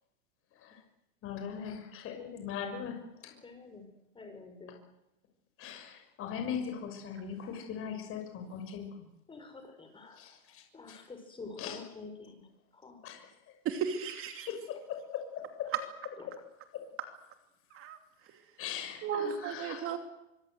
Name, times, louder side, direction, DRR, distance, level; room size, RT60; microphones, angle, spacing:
voice 1, 0.5-0.8 1.2-3.4 5.6-9.1 10.1-11.1 11.6-11.8 13.0-13.6 14.5-15.7 16.7-16.9 18.6-19.9, left 7 dB, 30° left, 4 dB, 6.3 m, -40 dB
voice 2, 3.4-3.9 4.1-4.8 9.3-10.4 10.7-13.0 16.2-16.3, left 3 dB, 10° left, 6 dB, 5.7 m, -48 dB
voice 3, 13.6-14.5 17.7-18.0 19.0-20.0, right 7 dB, 30° right, 7 dB, 2.7 m, -34 dB
24.5 x 24.5 x 8.0 m, 0.89 s
supercardioid pair, 145°, 41 cm